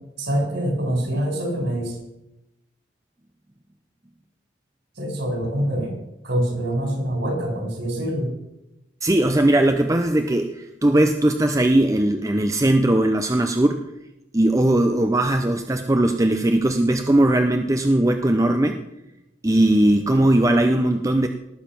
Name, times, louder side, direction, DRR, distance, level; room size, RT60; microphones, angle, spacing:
voice 1, 0.2-2.0 5.0-6.0 6.2-8.3, right 1 dB, 60° right, 1 dB, 5.1 m, -25 dB
voice 2, 9.0-13.9 14.3-18.8 19.4-21.3, right 1 dB, 15° right, 6 dB, 0.6 m, -19 dB
18.5 x 7.3 x 5.9 m, 0.90 s
head